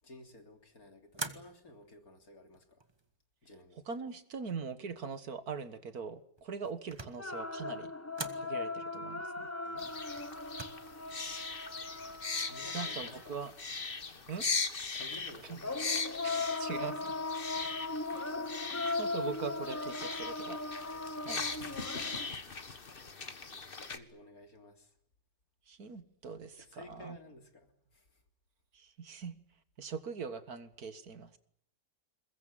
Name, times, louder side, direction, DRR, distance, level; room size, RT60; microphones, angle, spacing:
voice 1, 0.0-2.8 3.4-3.8 9.6-9.9 12.4-13.5 14.7-15.9 21.5-21.7 23.8-24.9 26.6-28.2, left 2 dB, 50° left, 5 dB, 3.8 m, -54 dB
sound 1, 1.1-1.8 2.5-3.1 6.4-7.3 8.1-8.5 10.2-10.7, right 2 dB, 15° right, 1.2 m, -43 dB
voice 2, 3.9-7.9 8.3-9.5 12.7-13.5 14.3-14.5 15.5-15.6 16.2-17.1 17.6-17.8 18.1-18.3 19.0-20.6 21.3-21.7 25.7-27.2 28.8-29.3 29.8-31.4, right 5 dB, 55° right, 12 dB, 1.9 m, -42 dB
sound 2, 7.2-13.4 15.6-22.3, left 3 dB, 10° left, 0.8 m, -38 dB
sound 3, 9.8-24.0, left 4 dB, 30° left, 1.6 m, -40 dB
22.0 x 21.0 x 9.0 m, 0.68 s
omnidirectional pair, 2.0 m